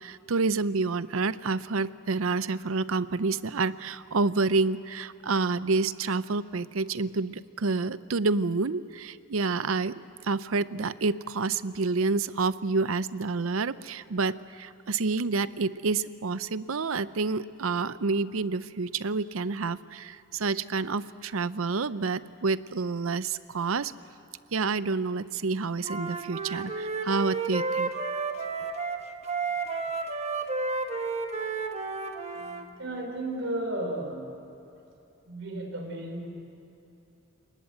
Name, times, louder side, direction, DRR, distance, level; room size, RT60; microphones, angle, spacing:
voice 1, 0.0-23.9 24.5-27.9, right 4 dB, 80° right, 15 dB, 0.7 m, -28 dB
Wind instrument woodwind instrument, 25.8-32.7, right 4 dB, 30° right, 1.3 m, -32 dB
voice 2, 32.3-34.3 35.3-36.3, right 1 dB, 65° right, 3 dB, 4.6 m, -34 dB
29.5 x 19.0 x 7.9 m, 2.8 s
head